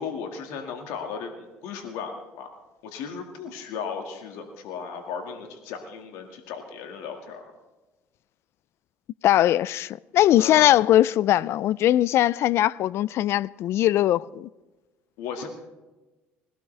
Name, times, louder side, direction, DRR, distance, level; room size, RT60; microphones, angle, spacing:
voice 1, 0.0-2.5 2.8-7.5 10.4-10.7 15.2-15.5, left 6 dB, 80° left, 2.0 m, -36 dB
voice 2, 9.2-14.5, left 13 dB, 60° left, 0.4 m, -20 dB
21.0 x 17.0 x 3.4 m
supercardioid pair, 90°, 5 cm